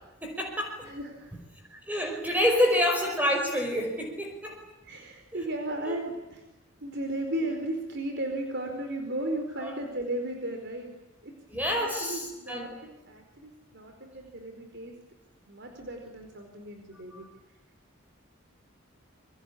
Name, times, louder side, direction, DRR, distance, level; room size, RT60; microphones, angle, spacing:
voice 1, 0.2-0.9 1.7-4.6 5.9-6.0 9.6-9.7 11.5-12.7 17.1-17.3, left 1 dB, 10° right, 2 dB, 5.3 m, -28 dB
voice 2, 0.8-1.3 4.8-6.4 6.8-10.9 11.2-11.3 11.8-14.9 15.5-17.3, right 1 dB, 55° right, 4 dB, 4.6 m, -35 dB
28.5 x 24.0 x 8.6 m, 0.99 s
head